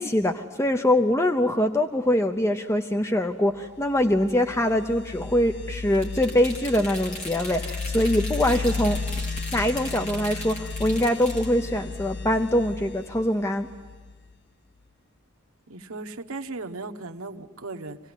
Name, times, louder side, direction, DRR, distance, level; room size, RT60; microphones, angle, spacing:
voice 1, 0.0-9.0 9.5-13.7, left 1 dB, 15° left, 6 dB, 0.7 m, -23 dB
sound 1, 3.8-14.3, left 4 dB, 55° left, 1.0 m, -34 dB
sound 2, 5.9-11.5, left 1 dB, 35° left, 3.5 m, -38 dB
voice 2, 15.7-18.0, right 3 dB, 75° right, 5 dB, 1.1 m, -36 dB
26.5 x 18.0 x 9.8 m, 1.4 s
head